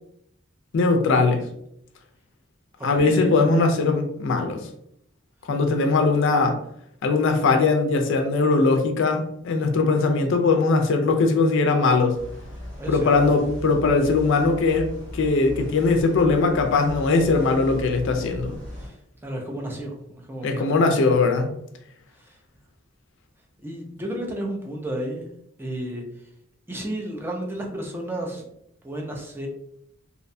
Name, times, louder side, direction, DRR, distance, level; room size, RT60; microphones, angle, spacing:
voice 1, 0.7-1.4 2.8-4.6 5.5-6.6 7.0-12.2 12.9-18.5 20.4-21.5, left 3 dB, 65° left, 5 dB, 0.4 m, -20 dB
voice 2, 2.8-3.4 12.8-13.3 18.8-21.0 22.2-22.4 23.6-25.3 25.6-26.0 26.7-28.4 28.8-29.5, right 1 dB, 10° right, 0 dB, 0.4 m, -33 dB
sound 1, 12.1-18.9, left 1 dB, 40° right, 1.1 m, -37 dB
2.7 x 2.1 x 2.5 m, 0.74 s
head